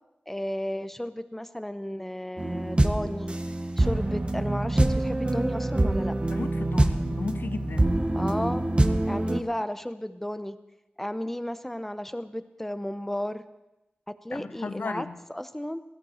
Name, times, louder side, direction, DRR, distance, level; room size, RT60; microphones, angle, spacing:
voice 1, 0.3-3.4 3.8-6.2 8.1-8.6 9.1-10.6 11.0-13.4 14.1-15.8, left 1 dB, 10° left, 11 dB, 0.7 m, -33 dB
sound 1, 2.4-9.4, right 1 dB, 30° right, 0.9 m, -25 dB
voice 2, 6.3-7.9 14.3-15.2, left 4 dB, 70° left, 11 dB, 0.7 m, -35 dB
16.5 x 14.5 x 4.4 m, 0.96 s
wide cardioid pair, 80°, 4 cm